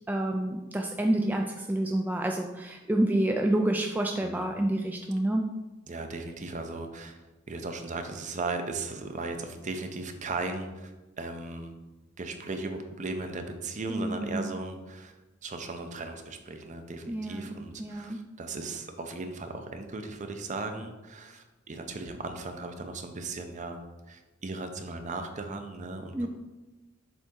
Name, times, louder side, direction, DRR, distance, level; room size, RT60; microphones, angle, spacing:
voice 1, 0.1-5.5 13.9-14.4 17.1-17.5 17.8-18.2 26.1-26.3, right 1 dB, 10° right, 2 dB, 0.3 m, -28 dB
voice 2, 5.9-11.8 12.2-15.1 15.4-23.8 24.1-26.3, right 3 dB, 40° right, 6 dB, 0.6 m, -37 dB
7.1 x 4.1 x 3.7 m, 1.1 s
head